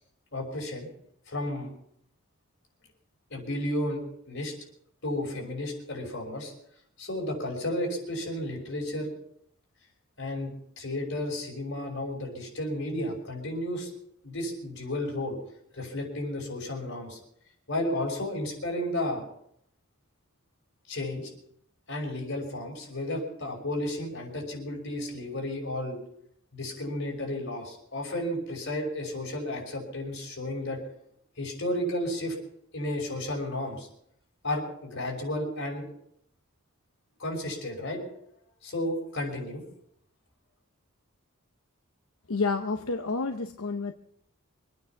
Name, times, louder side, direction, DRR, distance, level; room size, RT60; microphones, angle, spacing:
voice 1, 0.3-0.9 1.3-1.7 3.3-4.5 5.0-6.5 7.0-9.1 10.2-13.9 14.2-15.4 15.7-17.2 17.7-19.2 20.9-21.3 21.9-26.0 26.5-30.8 31.4-32.4 32.7-33.9 34.4-35.9 37.2-38.0 38.6-39.6, left 1 dB, 55° left, 0 dB, 5.7 m, -32 dB
voice 2, 42.3-43.9, left 4 dB, 80° left, 6 dB, 0.9 m, -29 dB
24.5 x 9.5 x 5.9 m, 0.70 s
head